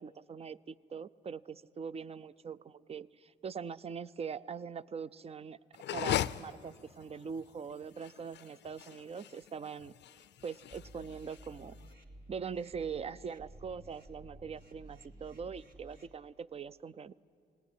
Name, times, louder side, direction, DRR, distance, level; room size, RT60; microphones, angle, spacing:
voice 1, 0.0-5.6 5.9-9.9 10.4-11.8 12.3-17.1, right 6 dB, 30° right, 18 dB, 0.5 m, -42 dB
sound 1, 5.7-11.9, left 11 dB, 60° left, 0.5 m, -39 dB
sound 2, 10.7-16.1, right 1 dB, 50° right, 2.7 m, -54 dB
19.0 x 18.0 x 9.7 m, 2.5 s
cardioid pair, 90°, 20 cm